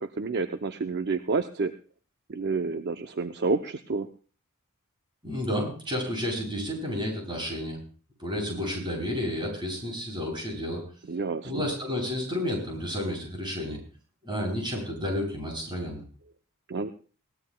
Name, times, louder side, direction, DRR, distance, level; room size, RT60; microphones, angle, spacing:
voice 1, 0.0-1.7 2.3-4.1 11.1-11.6 16.7-16.9, right 4 dB, 50° right, 8 dB, 0.6 m, -29 dB
voice 2, 5.2-7.8 8.2-10.8 11.4-13.8 14.2-16.0, left 1 dB, 20° right, -1 dB, 8.0 m, -31 dB
21.5 x 18.0 x 2.2 m, 0.39 s
head